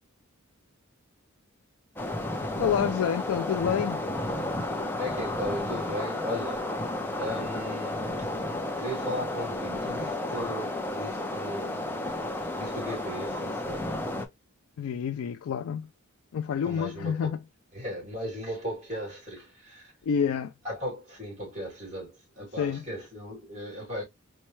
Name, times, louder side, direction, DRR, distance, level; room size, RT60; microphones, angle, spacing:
sound 1, 2.0-14.3, left 1 dB, 10° left, 0.5 m, -32 dB
voice 1, 2.6-4.0 14.8-15.9 16.3-17.4 20.0-20.5 22.6-22.8, left 7 dB, 80° left, 0.3 m, -28 dB
voice 2, 4.6-6.8 7.2-8.3 8.8-11.9 12.5-14.0 16.6-17.3 17.7-19.9 20.6-24.0, equal, 35° right, 2.7 m, -37 dB
4.3 x 2.2 x 3.1 m
head